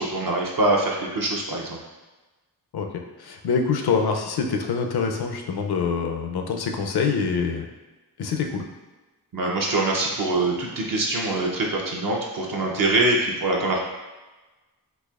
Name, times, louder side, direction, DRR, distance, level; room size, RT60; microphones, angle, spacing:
voice 1, 0.0-1.8 9.3-13.8, right 2 dB, 50° right, -2 dB, 0.6 m, -24 dB
voice 2, 3.2-7.7 8.2-8.7, left 5 dB, 65° left, 3 dB, 0.5 m, -25 dB
4.1 x 2.7 x 2.3 m, 1.2 s
wide cardioid pair, 85°, 42 cm